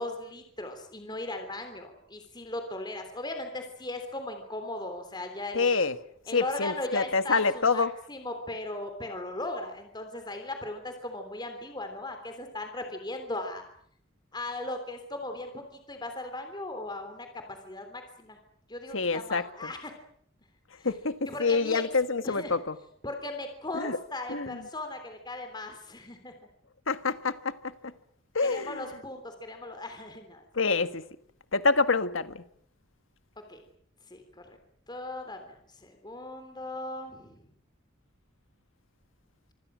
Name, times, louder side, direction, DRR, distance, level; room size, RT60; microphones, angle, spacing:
voice 1, 0.0-5.7 6.3-13.6 14.3-15.6 15.9-18.4 18.7-19.9 20.8-20.9 21.3-21.8 22.2-22.6 23.0-26.3 28.4-30.4 33.5-33.6 34.1-34.2 34.5-34.6 34.9-37.4, left 2 dB, 20° left, 3.4 m, -38 dB
voice 2, 5.5-6.0 6.3-7.9 18.9-19.7 20.8-22.8 23.7-24.0 24.3-24.6 26.9-27.6 28.4-28.8 30.6-31.0 31.5-32.4, left 4 dB, 85° left, 1.6 m, -27 dB
26.0 x 26.0 x 6.3 m
head